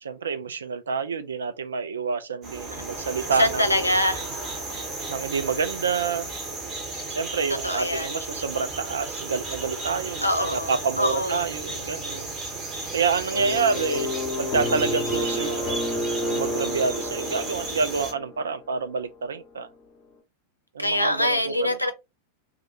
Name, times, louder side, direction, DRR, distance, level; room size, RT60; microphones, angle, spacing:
voice 1, 0.0-3.9 5.1-6.3 7.1-12.3 12.9-19.7 20.7-21.8, right 5 dB, 70° right, 0.3 m, -28 dB
sound 1, 2.4-18.1, right 2 dB, 25° right, 0.9 m, -34 dB
voice 2, 3.4-4.2 7.6-8.1 10.2-10.7 11.0-11.4 20.8-21.9, left 1 dB, 90° left, 0.4 m, -23 dB
sound 2, 13.3-18.5, left 1 dB, 35° left, 0.7 m, -30 dB
2.4 x 2.1 x 2.6 m
figure-of-eight pair, 90°, 0 cm